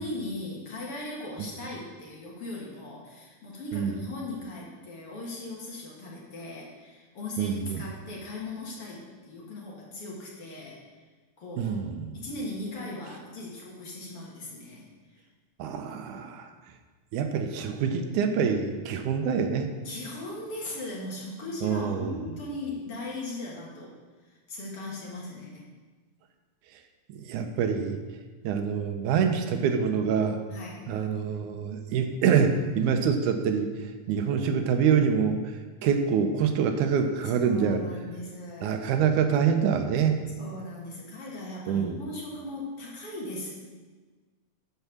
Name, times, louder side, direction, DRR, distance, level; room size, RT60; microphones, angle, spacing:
voice 1, 0.0-10.8 11.4-11.8 12.1-14.8 15.1-15.2 19.8-23.9 24.2-25.6 30.5-30.9 37.3-38.7 40.3-43.5, left 2 dB, 50° left, -3 dB, 2.5 m, -38 dB
voice 2, 7.4-7.8 11.6-12.1 15.6-16.5 17.1-19.7 21.6-22.1 27.1-28.0 28.4-30.4 30.9-33.7 34.1-35.4 35.8-37.8 38.6-40.2 41.7-42.0, right 7 dB, 85° right, 6 dB, 2.2 m, -25 dB
11.5 x 4.6 x 7.1 m, 1.4 s
omnidirectional pair, 3.5 m